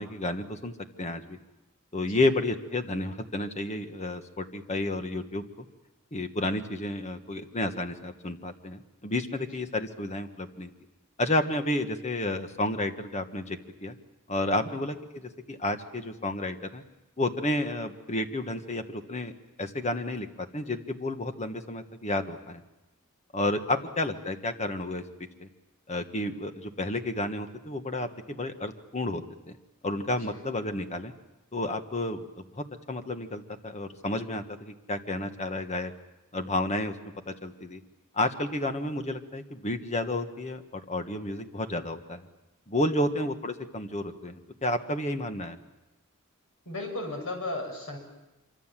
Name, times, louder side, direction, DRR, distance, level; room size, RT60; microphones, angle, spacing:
voice 1, 0.0-1.4 1.9-5.7 6.1-10.7 11.2-13.9 14.3-16.8 17.2-19.3 19.6-22.6 23.3-25.0 25.4-25.5 25.9-29.6 29.8-31.1 31.5-35.9 36.3-36.9 37.2-37.8 38.1-42.3 42.7-45.6, left 1 dB, 30° left, 7 dB, 1.6 m, -31 dB
voice 2, 46.7-48.0, left 2 dB, 65° left, 3 dB, 7.4 m, -36 dB
26.0 x 25.0 x 7.6 m, 1.0 s
head